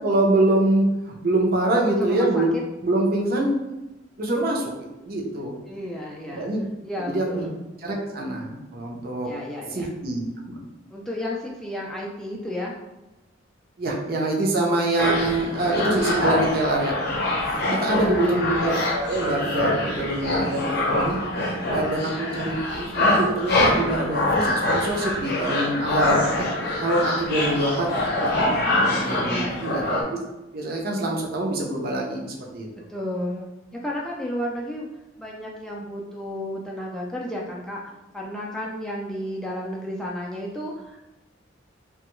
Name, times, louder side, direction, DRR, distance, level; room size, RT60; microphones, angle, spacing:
voice 1, 0.0-2.6 2.8-3.6 4.2-4.7 5.0-5.6 6.3-6.6 7.0-7.5 7.8-9.3 9.7-10.6 13.8-16.9 17.6-21.2 21.7-26.2 26.8-27.9 28.2-30.0 30.5-32.7, right 1 dB, 50° right, -1 dB, 0.6 m, -25 dB
voice 2, 1.9-2.4 5.7-6.5 6.8-7.5 9.2-9.9 10.9-12.7 17.8-18.7 21.9-22.4 29.2-29.7 32.9-34.9 35.2-37.8 38.1-41.0, left 1 dB, 5° left, -4 dB, 0.3 m, -33 dB
sound 1, 15.0-30.0, left 1 dB, 55° left, 0.6 m, -25 dB
2.9 x 2.3 x 3.0 m, 0.99 s
head